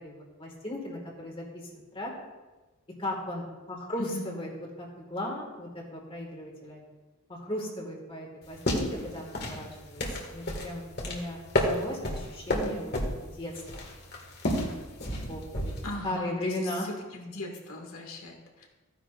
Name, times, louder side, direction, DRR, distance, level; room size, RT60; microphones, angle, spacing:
voice 1, 0.0-2.1 3.0-4.5 4.8-6.8 7.3-10.0 10.3-12.9 13.2-13.5 15.3-15.8 16.0-16.9, left 1 dB, 25° left, -2 dB, 1.9 m, -36 dB
sound 1, 8.4-15.9, left 1 dB, 50° left, 1.9 m, -32 dB
voice 2, 15.8-16.5 17.1-18.7, left 1 dB, 90° left, 0 dB, 2.1 m, -39 dB
15.0 x 9.8 x 2.5 m, 1.2 s
head